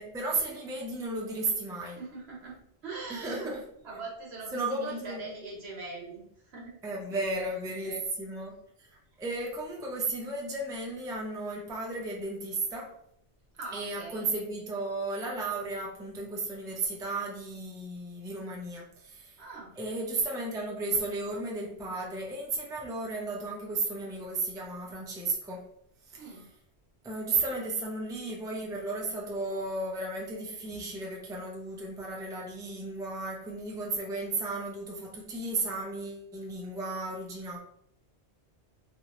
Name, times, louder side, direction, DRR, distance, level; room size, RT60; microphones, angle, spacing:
voice 1, 0.0-2.0 3.1-3.6 4.5-5.3 6.8-8.9 9.2-12.9 13.7-19.4 19.8-25.6 26.1-26.3 27.0-37.6, right 2 dB, 5° right, -2 dB, 0.4 m, -34 dB
voice 2, 2.0-3.5 3.8-6.8 7.1-7.5 7.8-8.1 13.5-14.3 19.4-19.7 26.1-26.5, right 3 dB, 70° right, -2 dB, 1.2 m, -42 dB
3.3 x 2.6 x 2.9 m, 0.71 s
omnidirectional pair, 1.1 m